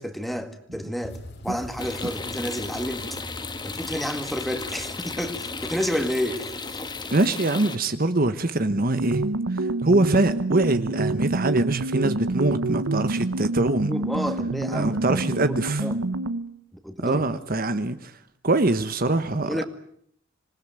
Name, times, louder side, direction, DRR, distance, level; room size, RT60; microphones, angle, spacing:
voice 1, 0.0-3.2 3.6-6.9 12.0-12.1 13.9-16.0 16.7-17.2 19.5-19.6, equal, ahead, 2.1 m, -31 dB
sound 1, 1.0-7.2, equal, 55° left, 3.5 m, -43 dB
sound 2, 1.8-7.8, left 4 dB, 20° left, 1.3 m, -35 dB
voice 2, 7.1-9.2 9.5-13.9 14.7-15.8 17.0-18.2 18.4-19.6, right 2 dB, 45° right, 1.2 m, -23 dB
sound 3, 8.9-16.5, right 2 dB, 90° right, 1.0 m, -27 dB
26.5 x 20.0 x 9.2 m
head